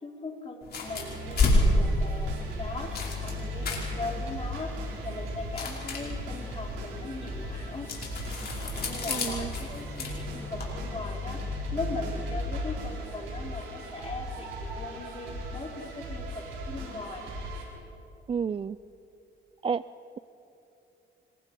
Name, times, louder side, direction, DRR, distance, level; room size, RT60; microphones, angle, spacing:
voice 1, 0.0-4.7 5.0-7.9 8.7-11.4 11.7-17.3, left 3 dB, 30° left, 0 dB, 3.6 m, -39 dB
sound 1, 0.6-10.7, left 2 dB, 55° left, 5.0 m, -31 dB
sound 2, 0.8-17.6, equal, 85° right, 5.2 m, -37 dB
voice 2, 9.1-9.5 18.3-18.8 19.6-19.8, right 6 dB, 30° right, 16 dB, 0.4 m, -30 dB
26.0 x 22.5 x 4.6 m, 2.9 s
cardioid pair, 90°, 20 cm